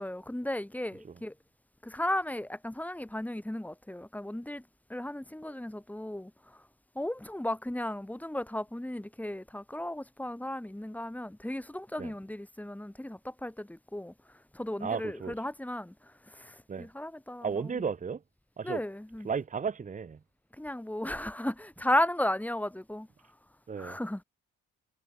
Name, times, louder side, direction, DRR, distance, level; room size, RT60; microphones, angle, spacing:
voice 1, 0.0-1.3 1.8-4.6 4.9-6.6 7.0-14.1 14.5-17.8 18.6-19.3 20.5-23.1 23.8-24.2, left 1 dB, 5° left, 3.8 m, -35 dB
voice 2, 14.8-15.3 16.7-16.9 17.4-18.2 18.6-18.8 19.2-20.2 23.7-24.0, right 6 dB, 25° right, 0.9 m, -34 dB
cardioid pair, 90°, 30 cm